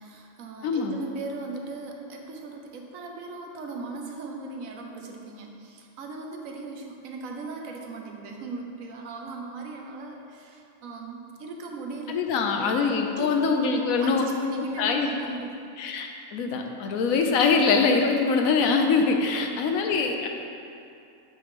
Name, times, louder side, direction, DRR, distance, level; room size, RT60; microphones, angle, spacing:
voice 1, 0.0-12.8 13.1-15.6 19.3-19.7, right 3 dB, 80° right, 2 dB, 1.1 m, -38 dB
voice 2, 0.6-1.0 12.1-14.2 14.6-15.1 15.8-20.3, left 4 dB, 85° left, 3 dB, 1.1 m, -23 dB
8.2 x 3.2 x 5.1 m, 2.6 s
omnidirectional pair, 1.4 m